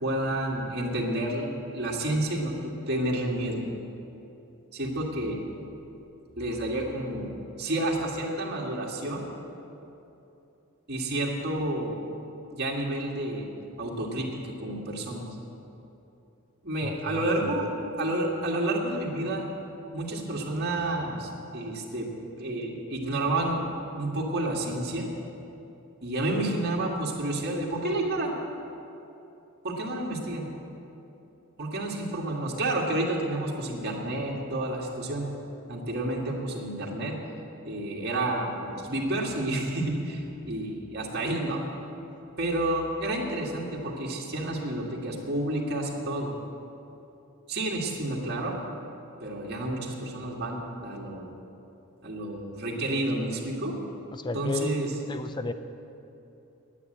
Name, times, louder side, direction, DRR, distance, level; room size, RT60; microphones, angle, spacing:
voice 1, 0.0-3.6 4.7-5.4 6.4-7.3 7.6-9.3 10.9-12.0 12.5-13.5 13.8-14.3 14.6-15.3 16.6-17.7 18.0-19.5 19.9-22.1 22.4-25.1 26.0-28.3 29.6-30.5 31.6-35.2 35.7-37.2 37.6-41.6 42.4-46.3 47.5-48.6 49.2-51.3 52.0-53.7 54.3-54.9, right 1 dB, 50° right, -2 dB, 1.9 m, -30 dB
voice 2, 16.8-17.7 54.1-54.8 55.1-55.5, left 3 dB, 20° left, 10 dB, 0.4 m, -34 dB
10.0 x 9.6 x 7.8 m, 2.8 s
head